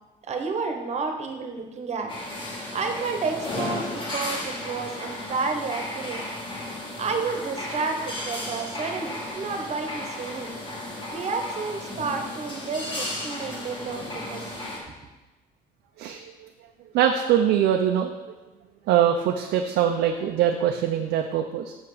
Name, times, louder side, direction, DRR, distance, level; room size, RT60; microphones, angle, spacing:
voice 1, 0.3-2.1 2.4-6.2 7.0-10.6 11.1-14.5, right 4 dB, 40° right, 4 dB, 1.1 m, -31 dB
sound 1, 2.1-14.8, left 1 dB, 30° left, 2.0 m, -34 dB
voice 2, 16.9-18.1 18.9-21.7, right 9 dB, 80° right, 3 dB, 0.6 m, -22 dB
6.5 x 5.9 x 4.9 m, 1.1 s
cardioid pair, 110°, 17 cm